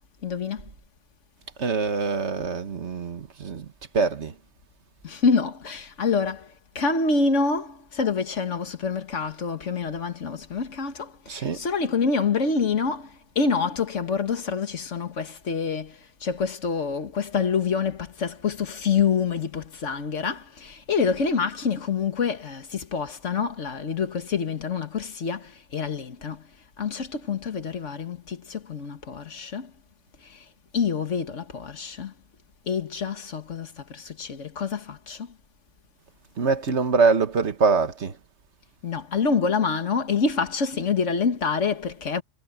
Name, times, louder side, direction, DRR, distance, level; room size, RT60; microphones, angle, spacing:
voice 1, 0.2-0.7 5.0-26.5 26.8-29.7 30.2-30.5 30.7-32.1 32.7-35.4 38.8-42.2, left 5 dB, 85° left, 1.9 m, -27 dB
voice 2, 1.6-3.7 3.9-4.3 11.3-11.6 36.4-38.1, right 4 dB, 70° right, 1.7 m, -24 dB
omnidirectional pair, 1.2 m